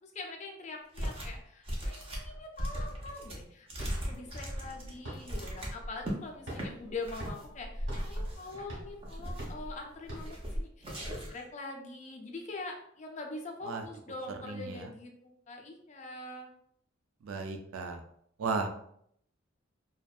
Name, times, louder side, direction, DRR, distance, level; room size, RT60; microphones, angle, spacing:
voice 1, 0.0-16.5, left 3 dB, 35° left, 2 dB, 0.4 m, -44 dB
sound 1, 0.9-1.4 1.6-6.2 6.5-6.7 7.0-7.4 7.9-8.6 9.0-9.6 10.1-10.5 10.8-11.4, equal, 25° right, 0.5 m, -38 dB
sound 2, 3.7-10.6, equal, 65° right, 1.0 m, -41 dB
voice 2, 14.4-14.9 17.2-18.0 18.4-18.7, right 4 dB, 85° right, 5 dB, 0.4 m, -34 dB
2.6 x 2.1 x 2.3 m, 0.70 s
head